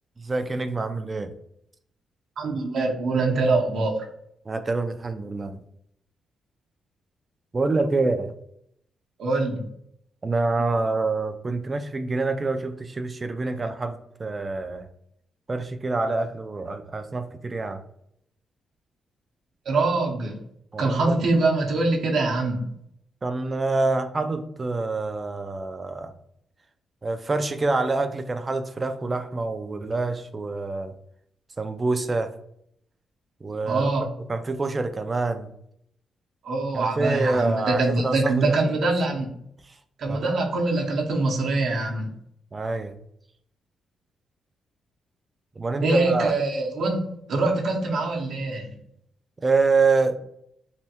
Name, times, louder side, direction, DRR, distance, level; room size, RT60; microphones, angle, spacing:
voice 1, 0.2-1.3 4.5-5.6 7.5-8.3 10.2-14.9 15.5-17.8 20.7-21.2 23.2-26.1 27.0-30.9 31.6-32.3 33.4-33.9 34.3-35.5 36.7-38.5 39.7-39.8 40.1-40.4 42.5-43.0 45.6-46.3 49.4-50.2, right 3 dB, 30° right, 0.3 m, -26 dB
voice 2, 2.4-4.1 9.2-9.6 19.7-20.4 20.8-22.6 33.6-34.1 36.4-39.3 40.0-42.1 45.8-47.0 47.3-48.8, right 3 dB, 70° right, 0.7 m, -24 dB
3.2 x 2.2 x 2.8 m
cardioid pair, 100°, 0 cm